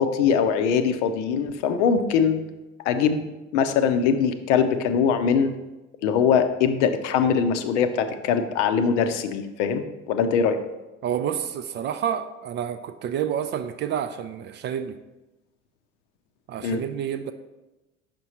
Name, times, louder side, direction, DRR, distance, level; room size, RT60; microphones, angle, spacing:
voice 1, 0.0-2.4 2.9-3.2 3.5-5.5 6.0-10.6 16.6-16.8, left 6 dB, 65° left, 9 dB, 0.7 m, -22 dB
voice 2, 11.0-15.0 16.5-17.3, right 9 dB, 30° right, 10 dB, 0.3 m, -29 dB
6.0 x 5.1 x 4.3 m, 1.0 s
figure-of-eight pair, 65°, 39 cm